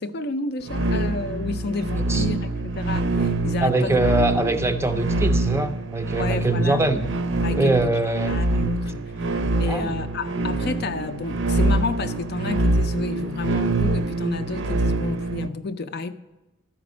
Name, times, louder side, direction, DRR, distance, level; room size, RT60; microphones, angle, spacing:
voice 1, 0.0-4.0 6.2-6.8 7.4-7.8 8.3-9.1 9.6-16.2, left 3 dB, 50° left, 0.5 m, -30 dB
sound 1, 0.7-15.5, right 2 dB, 65° right, 0.6 m, -25 dB
voice 2, 3.6-7.0 7.5-8.4 9.7-9.9, right 2 dB, 15° right, 0.5 m, -23 dB
12.0 x 5.2 x 6.2 m
head